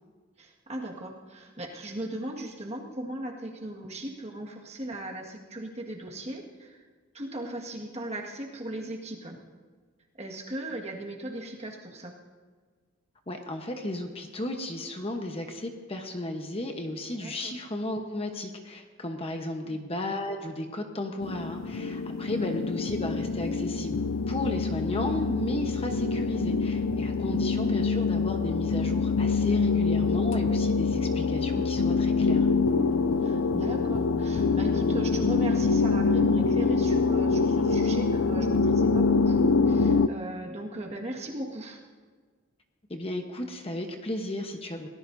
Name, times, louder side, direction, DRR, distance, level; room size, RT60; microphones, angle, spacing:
voice 1, 0.4-6.8 7.1-9.4 10.2-12.1 17.2-17.5 22.2-22.5 29.4-29.8 33.2-41.8, right 1 dB, 30° right, 0 dB, 1.8 m, -38 dB
voice 2, 13.3-24.0 24.3-32.5 42.9-44.9, left 1 dB, 25° left, 4 dB, 1.0 m, -34 dB
sound 1, 21.2-40.1, left 4 dB, 65° left, 0.5 m, -25 dB
23.5 x 18.0 x 2.7 m, 1.5 s
head